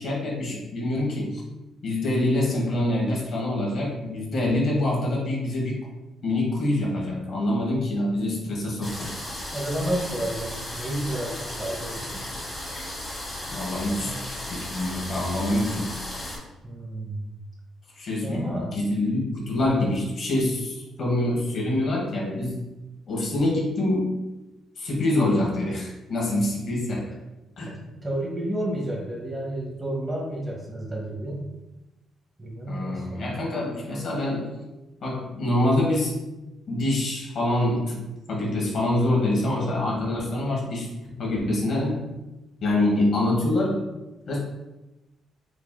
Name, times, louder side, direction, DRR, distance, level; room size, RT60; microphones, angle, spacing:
voice 1, 0.0-1.4 1.8-5.8 6.2-9.1 13.5-15.9 18.0-22.7 23.1-24.2 24.8-27.2 27.6-27.7 32.7-34.6 35.0-36.2 36.7-42.1 42.6-43.9 44.3-44.4, left 1 dB, 60° left, -3 dB, 1.2 m, -25 dB
sound 1, 8.8-16.4, left 1 dB, 20° left, 1.1 m, -35 dB
voice 2, 9.5-12.2 14.0-14.3 16.6-17.3 18.2-18.7 26.5-26.8 27.6-31.4 32.4-33.4, right 1 dB, 20° right, -2 dB, 0.9 m, -31 dB
4.7 x 2.7 x 2.2 m, 1.0 s
cardioid pair, 90°, 0 cm